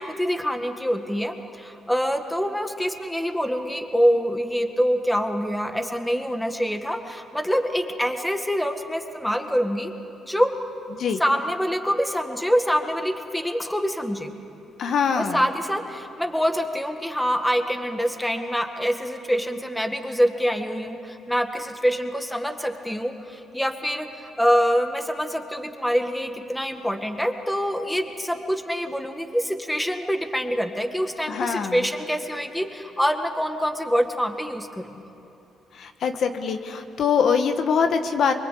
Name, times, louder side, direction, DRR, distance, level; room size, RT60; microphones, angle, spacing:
voice 1, 0.0-9.9 10.2-10.6 11.2-14.3 15.1-34.9, equal, 5° left, 6 dB, 1.8 m, -25 dB
voice 2, 14.8-15.4 31.3-31.8 35.7-38.3, left 6 dB, 65° left, 6 dB, 1.5 m, -23 dB
24.5 x 23.0 x 8.6 m, 2.8 s
cardioid pair, 90°, 0 cm